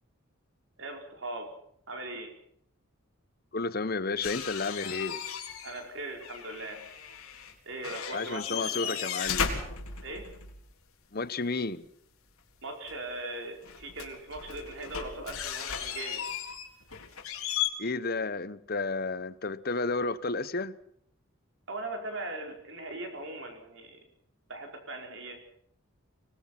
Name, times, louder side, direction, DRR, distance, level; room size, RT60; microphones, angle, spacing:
voice 1, 0.8-1.5 1.9-2.3 5.6-6.8 7.6-9.1 10.0-10.3 12.6-16.2 21.7-24.0 24.5-25.4, right 2 dB, 60° right, 5.1 m, -39 dB
voice 2, 3.5-5.2 8.1-9.5 11.1-11.9 17.8-20.8, left 3 dB, 45° left, 0.9 m, -32 dB
sound 1, 4.2-5.8 6.1-7.5 7.8-10.6 12.9-13.0 13.6-17.7, left 8 dB, 85° left, 3.9 m, -35 dB
25.0 x 20.5 x 5.9 m
head